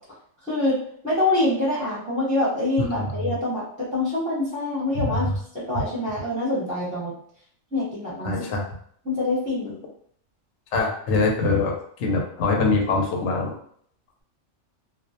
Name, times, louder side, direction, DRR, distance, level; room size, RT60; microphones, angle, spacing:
voice 1, 0.4-5.3 5.5-7.1 7.7-8.4 9.0-9.8, left 2 dB, 10° right, -8 dB, 0.6 m, -25 dB
voice 2, 2.9-3.3 5.0-5.3 8.2-8.6 10.7-11.7 12.0-13.5, left 3 dB, 70° left, 0 dB, 0.9 m, -23 dB
2.3 x 2.1 x 2.7 m, 0.63 s
omnidirectional pair, 1.3 m